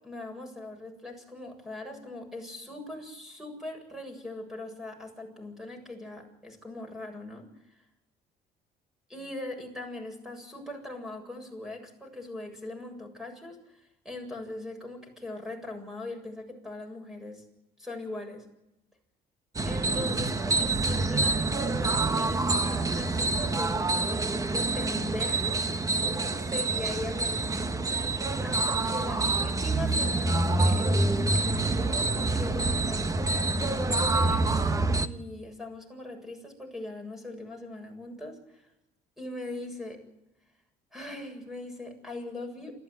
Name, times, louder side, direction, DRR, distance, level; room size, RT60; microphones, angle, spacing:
voice 1, 0.0-7.5 9.1-17.4 17.8-18.5 19.6-25.6 26.4-27.8 28.4-38.6 39.2-40.0 40.9-42.8, left 2 dB, ahead, 4 dB, 7.8 m, -40 dB
sound 1, 19.6-35.1, right 2 dB, 20° right, 1.3 m, -27 dB
28.5 x 14.0 x 9.5 m, 0.88 s
cardioid pair, 110°, 17 cm